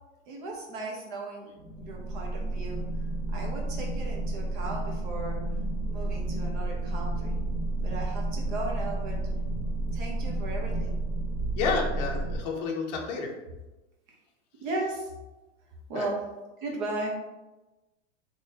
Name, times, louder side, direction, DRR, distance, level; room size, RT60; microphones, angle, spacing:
voice 1, 0.3-2.9 3.3-5.4 5.9-7.4 7.8-9.2 9.9-11.0 14.1-14.2 14.6-15.1 15.9-16.2 16.6-17.1, right 2 dB, 45° right, -1 dB, 1.0 m, -36 dB
sound 1, 1.6-12.4, right 2 dB, 10° right, 0.3 m, -31 dB
voice 2, 11.5-13.3 15.9-16.1, left 4 dB, 35° left, 0 dB, 0.6 m, -30 dB
3.9 x 3.2 x 2.7 m, 1.1 s
supercardioid pair, 165°, 36 cm